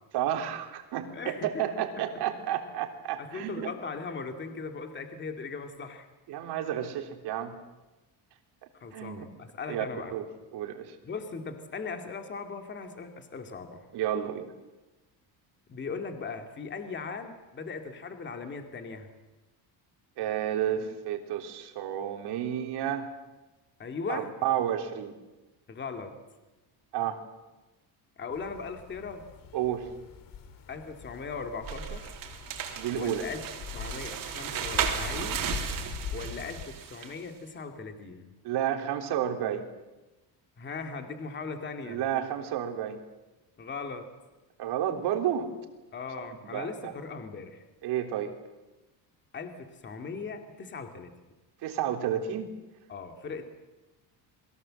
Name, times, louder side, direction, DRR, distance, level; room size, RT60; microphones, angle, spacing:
voice 1, 0.1-3.7 6.3-7.6 8.9-9.3 9.7-9.9 10.1-10.3 10.5-11.0 13.9-14.5 20.2-23.1 24.1-25.2 26.9-27.2 29.5-29.9 32.7-33.3 38.4-39.7 41.8-43.0 44.6-45.5 46.2-47.0 47.8-48.3 51.6-52.5, right 10 dB, 70° right, 5 dB, 3.6 m, -31 dB
voice 2, 1.1-1.6 3.2-6.1 8.8-10.1 11.0-13.8 15.7-19.1 23.8-24.3 25.7-26.1 28.2-29.2 30.7-32.2 32.9-33.4 33.7-35.4 36.1-38.3 40.6-42.0 43.6-44.1 45.9-47.6 49.3-51.1 52.9-53.5, left 4 dB, 25° left, 6 dB, 2.5 m, -38 dB
sound 1, 28.3-36.7, left 5 dB, 55° left, 2.9 m, -42 dB
sound 2, 31.6-37.2, right 9 dB, 55° right, 3.6 m, -35 dB
29.0 x 22.0 x 7.7 m, 1.1 s
cardioid pair, 170°, 41 cm